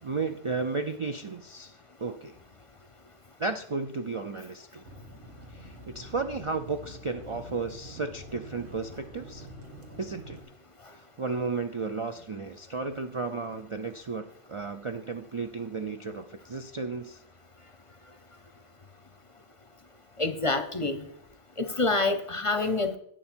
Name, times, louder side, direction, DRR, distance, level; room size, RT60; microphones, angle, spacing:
voice 1, 0.0-2.4 3.4-4.8 5.5-9.5 10.0-10.4 10.9-17.2, right 4 dB, 40° right, 6 dB, 0.4 m, -34 dB
sound 1, 4.8-10.4, equal, 75° right, 2.0 m, -46 dB
voice 2, 20.2-21.0 21.6-23.0, left 3 dB, 35° left, 9 dB, 0.7 m, -27 dB
10.5 x 8.8 x 4.4 m, 0.69 s
omnidirectional pair, 1.1 m